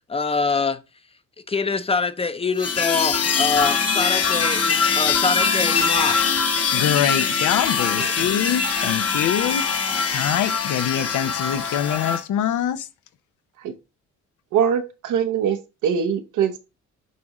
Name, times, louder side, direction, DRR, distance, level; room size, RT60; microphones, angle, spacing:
voice 1, 0.1-0.8 1.5-6.3 8.8-8.9 9.2-9.3 9.8-10.2, left 4 dB, 20° left, 0.7 m, -25 dB
sound 1, 2.6-12.2, left 5 dB, 55° left, 1.3 m, -22 dB
voice 2, 6.7-9.7 10.1-12.9, left 10 dB, 80° left, 0.8 m, -24 dB
voice 3, 14.5-16.6, right 8 dB, 90° right, 1.1 m, -23 dB
8.4 x 3.7 x 3.1 m
cardioid pair, 90°, 30 cm